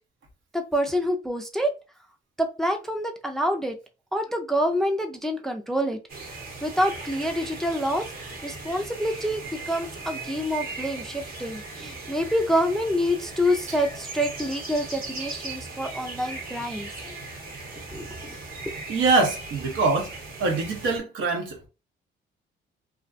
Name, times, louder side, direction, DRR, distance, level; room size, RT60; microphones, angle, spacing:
voice 1, 0.5-1.7 2.4-3.7 4.1-6.0 6.6-17.2 17.9-18.4 18.7-18.8, equal, ahead, 0.3 m, -27 dB
sound 1, 6.1-21.0, right 3 dB, 50° right, 0.8 m, -38 dB
voice 2, 18.9-20.1 20.4-21.7, right 3 dB, 80° right, 0.8 m, -24 dB
2.4 x 2.1 x 2.4 m
cardioid pair, 90°, 20 cm